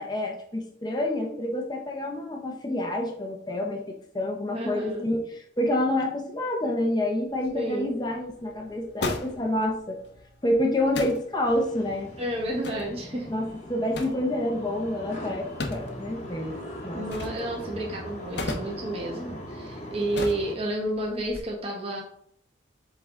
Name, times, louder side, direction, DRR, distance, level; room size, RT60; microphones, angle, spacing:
voice 1, 0.0-10.0 10.4-12.1 13.3-16.6 16.8-17.1, left 1 dB, 20° left, 1 dB, 0.8 m, -28 dB
voice 2, 4.5-5.1 7.5-8.0 12.2-13.3 16.9-22.0, right 1 dB, 30° right, -2 dB, 1.0 m, -31 dB
sound 1, 7.3-21.4, left 2 dB, 60° left, 0.9 m, -39 dB
sound 2, 11.4-20.6, equal, 35° left, 1.2 m, -40 dB
7.5 x 3.9 x 3.7 m, 0.69 s
head